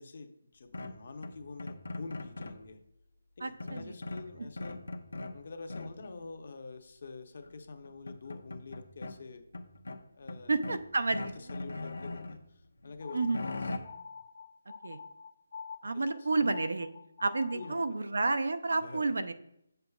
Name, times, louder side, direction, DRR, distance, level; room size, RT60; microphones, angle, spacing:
voice 1, 0.0-2.8 3.4-4.8 5.3-9.4 10.1-10.5 11.3-13.2 13.4-13.7 15.9-16.3 17.5-18.0 18.8-19.1, left 4 dB, 50° left, 6 dB, 0.7 m, -46 dB
sound 1, 0.7-2.7 3.6-5.4 5.7-6.1 7.4-7.5 7.8-9.1 9.5-10.8 11.1-12.4 12.8-13.8, left 2 dB, 85° left, 0.8 m, -40 dB
voice 2, 3.4-3.9 10.5-11.4 13.1-13.4 14.8-15.0 15.8-16.9 17.2-19.3, right 3 dB, 80° right, 10 dB, 0.5 m, -30 dB
sound 2, 13.0-17.9, left 6 dB, 35° left, 0.4 m, -47 dB
7.8 x 6.7 x 2.3 m, 0.76 s
hypercardioid pair, 170°, 0 cm